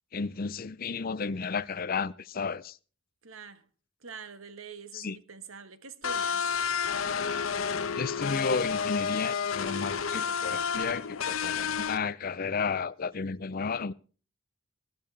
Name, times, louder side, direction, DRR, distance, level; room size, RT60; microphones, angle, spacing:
voice 1, 0.1-2.8 4.9-5.2 8.0-13.9, left 5 dB, 45° left, 0.5 m, -32 dB
voice 2, 3.2-3.6 4.0-6.5, right 5 dB, 85° right, 1.4 m, -45 dB
sound 1, 6.0-12.0, left 6 dB, 80° left, 0.9 m, -30 dB
20.0 x 12.5 x 3.3 m
head